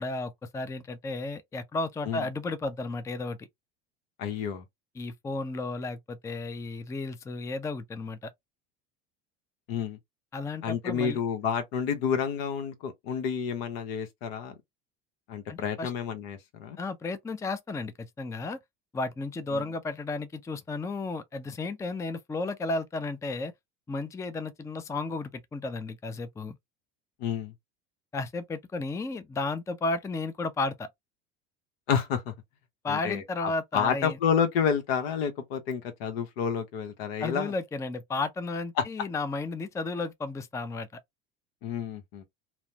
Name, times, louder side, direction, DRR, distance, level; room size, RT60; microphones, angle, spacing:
voice 1, 0.0-3.5 5.0-8.3 10.3-11.2 15.5-15.9 16.8-18.6 18.9-23.5 23.9-26.6 28.1-30.9 32.8-34.2 37.2-41.0, left 3 dB, 10° left, 0.4 m, -33 dB
voice 2, 4.2-4.6 9.7-10.0 10.6-14.5 15.3-16.8 19.5-19.6 27.2-27.5 31.9-32.3 32.9-37.5 38.8-38.9 41.6-42.2, left 7 dB, 70° left, 0.9 m, -29 dB
2.9 x 2.0 x 2.7 m
hypercardioid pair, 80°, 32 cm